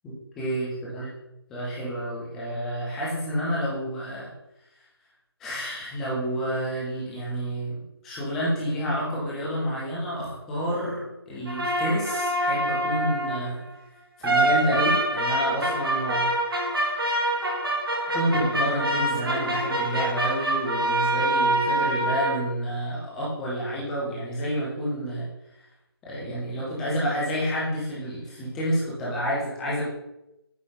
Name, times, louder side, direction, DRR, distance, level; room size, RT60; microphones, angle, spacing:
voice 1, 0.0-1.1 1.5-4.3 5.4-13.6 14.2-16.3 18.1-25.3 26.0-29.8, equal, ahead, -7 dB, 0.4 m, -29 dB
sound 1, 11.5-13.5 14.2-22.4, right 1 dB, 60° right, 1.3 m, -25 dB
8.6 x 3.7 x 3.2 m, 0.92 s
figure-of-eight pair, 155°, 13 cm